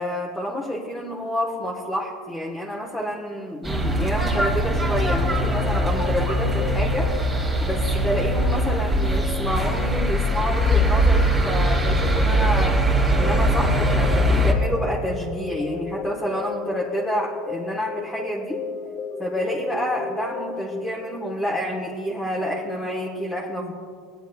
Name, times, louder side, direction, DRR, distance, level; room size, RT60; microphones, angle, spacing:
voice 1, 0.0-7.1 7.6-12.8 13.2-18.6 19.2-23.7, equal, 5° left, -3 dB, 1.2 m, -28 dB
sound 1, 3.6-14.5, equal, 20° right, 2.0 m, -21 dB
sound 2, 5.0-21.6, left 4 dB, 30° left, 1.3 m, -36 dB
20.0 x 9.1 x 2.3 m, 2.2 s
supercardioid pair, 125°, 0 cm